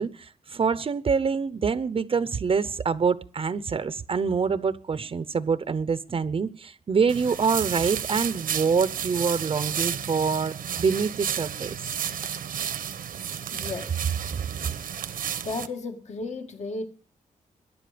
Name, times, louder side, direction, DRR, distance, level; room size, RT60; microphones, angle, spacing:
voice 1, 0.0-11.8, right 5 dB, 40° right, 0.8 m, -26 dB
sound 1, 7.1-15.7, right 8 dB, 90° right, 1.3 m, -32 dB
voice 2, 13.5-14.1 15.4-16.9, left 3 dB, 55° left, 2.0 m, -34 dB
23.0 x 11.0 x 5.2 m
wide cardioid pair, 135°, 14 cm